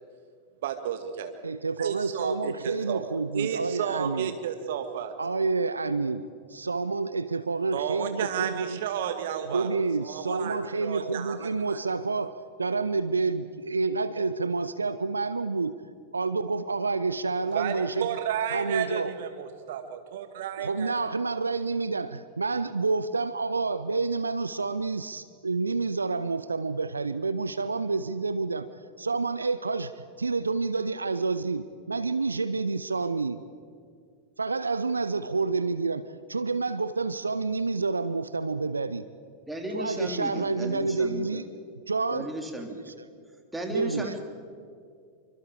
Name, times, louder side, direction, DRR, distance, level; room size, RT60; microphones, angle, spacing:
voice 1, 0.6-1.3 1.8-3.0 3.3-5.1 7.7-9.7 10.0-11.8 17.5-20.9, right 9 dB, 55° right, 7 dB, 2.0 m, -32 dB
voice 2, 1.4-4.4 5.2-6.2 6.5-8.8 9.5-15.7 16.1-18.1 18.5-19.1 20.6-28.7 29.0-33.4 34.4-39.0 39.7-41.5 41.9-42.3 42.8-42.9 43.7-44.2, right 3 dB, 80° right, 14 dB, 0.6 m, -29 dB
voice 3, 39.5-41.5 42.1-42.9 43.5-44.2, equal, 5° right, 3 dB, 3.0 m, -35 dB
26.5 x 24.5 x 4.9 m, 2.3 s
figure-of-eight pair, 90°, 0 cm